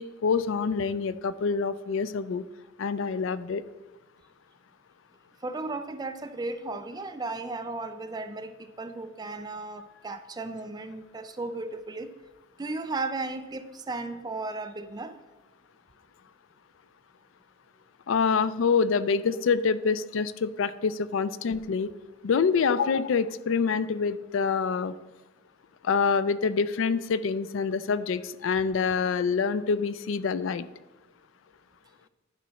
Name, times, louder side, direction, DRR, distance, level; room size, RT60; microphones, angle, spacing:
voice 1, 0.0-2.4 2.8-3.6 18.1-21.9 22.2-25.0 25.8-30.7, left 5 dB, 90° left, 15 dB, 0.4 m, -26 dB
voice 2, 5.4-12.1 12.6-15.2, right 3 dB, 20° right, 9 dB, 0.4 m, -35 dB
11.5 x 4.1 x 5.6 m, 1.1 s
head